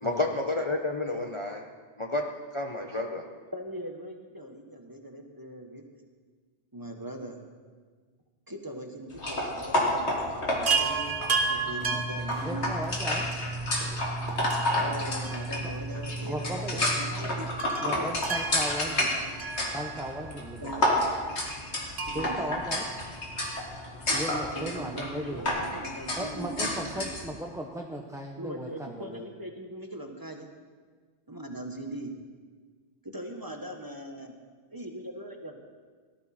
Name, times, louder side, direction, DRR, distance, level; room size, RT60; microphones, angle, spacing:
voice 1, 0.0-1.6 2.0-2.3 2.5-3.2, left 2 dB, 30° left, 2 dB, 0.8 m, -30 dB
voice 2, 3.5-5.8 6.7-7.4 8.5-12.8 14.8-17.5 17.8-18.2 18.9-19.3 20.6-20.8 22.1-22.5 24.5-26.5 26.9-27.1 28.4-30.5 31.3-32.1 33.0-34.3 34.7-35.7, right 1 dB, 20° right, 3 dB, 1.2 m, -40 dB
sound 1, 9.1-27.2, left 1 dB, 65° left, 2.4 m, -31 dB
Chime, 10.7-13.1 14.5-16.0 16.3-16.4 17.6-20.3 22.0-23.6 25.1-25.2 25.5-25.6, right 5 dB, 80° right, 1.8 m, -33 dB
sound 2, 11.8-17.6, right 2 dB, 60° right, 2.2 m, -36 dB
voice 3, 12.4-13.3 16.2-16.8 17.8-19.1 19.7-21.1 22.1-22.9 24.1-25.4 26.2-29.3, equal, 5° right, 0 dB, 0.7 m, -36 dB
18.0 x 13.5 x 4.3 m, 1.5 s
omnidirectional pair, 1.2 m